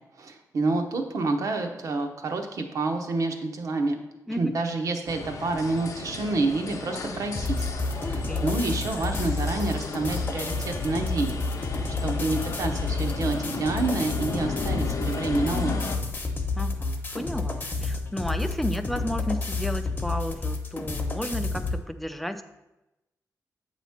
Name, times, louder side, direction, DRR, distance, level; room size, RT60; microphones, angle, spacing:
voice 1, 0.2-4.0 4.3-7.7 8.0-15.9, right 3 dB, 65° right, 5 dB, 0.8 m, -28 dB
sound 1, 5.1-16.0, left 4 dB, 60° left, 0.7 m, -35 dB
sound 2, 7.3-21.8, left 3 dB, 30° left, 0.8 m, -30 dB
voice 2, 8.0-8.5 16.6-22.4, equal, ahead, 8 dB, 0.4 m, -33 dB
7.8 x 3.0 x 5.7 m, 0.97 s
wide cardioid pair, 110°, 6 cm